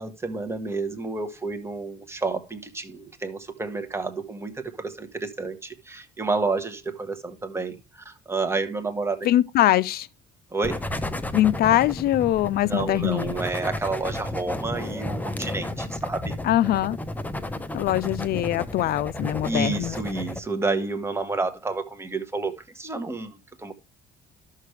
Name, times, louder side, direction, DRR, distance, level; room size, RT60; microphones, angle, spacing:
voice 1, 0.0-7.8 8.0-9.2 10.5-10.8 12.7-16.3 19.4-23.7, right 3 dB, 15° right, 1.5 m, -30 dB
voice 2, 9.2-10.1 11.3-13.4 16.4-17.0 17.7-20.0, left 13 dB, 65° left, 0.4 m, -22 dB
sound 1, 10.6-20.4, left 1 dB, 10° left, 0.9 m, -32 dB
12.0 x 6.5 x 3.3 m
cardioid pair, 110°, 17 cm